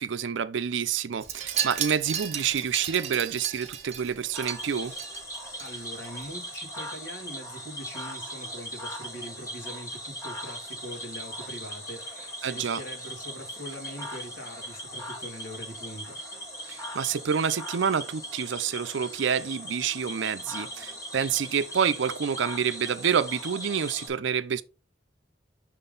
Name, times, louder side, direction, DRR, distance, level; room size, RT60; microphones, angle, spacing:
voice 1, 0.0-4.9 12.4-12.8 16.7-24.6, right 7 dB, 80° right, 0.5 m, -28 dB
Wind chime, 1.2-5.7 6.0-6.3 6.5-6.6, right 9 dB, 35° right, 0.9 m, -34 dB
Cricket / Frog, 4.3-24.1, equal, 20° left, 1.7 m, -39 dB
voice 2, 5.6-16.2, equal, 75° left, 2.5 m, -42 dB
6.3 x 3.9 x 3.8 m
head